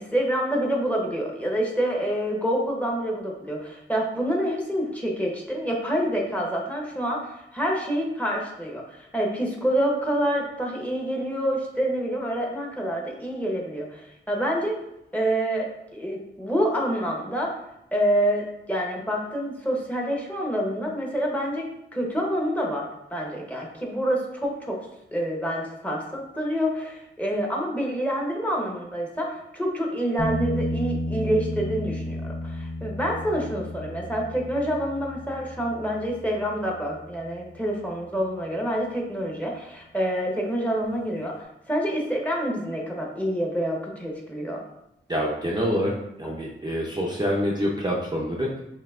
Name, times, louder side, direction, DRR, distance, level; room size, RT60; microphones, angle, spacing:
voice 1, 0.0-14.8 15.1-17.6 17.9-24.8 25.1-44.6, equal, 5° left, -1 dB, 0.8 m, -27 dB
sound 1, 30.2-37.8 40.8-40.9, equal, 85° left, 0.8 m, -32 dB
voice 2, 45.1-45.9 46.2-48.6, equal, 20° right, -4 dB, 0.5 m, -26 dB
5.8 x 2.7 x 2.4 m, 0.84 s
wide cardioid pair, 85°, 21 cm